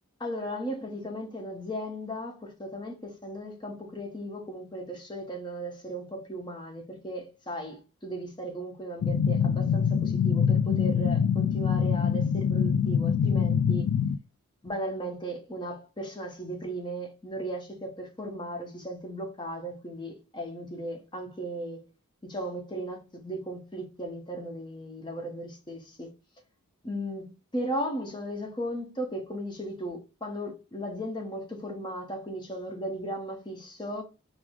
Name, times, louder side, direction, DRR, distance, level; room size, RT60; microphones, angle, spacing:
voice 1, 0.2-13.9 14.6-21.8 22.2-26.1 26.8-34.0, right 1 dB, 20° left, 0.9 m, -36 dB
sound 1, 9.0-14.2, left 7 dB, 80° left, 0.3 m, -24 dB
4.6 x 2.0 x 3.6 m
head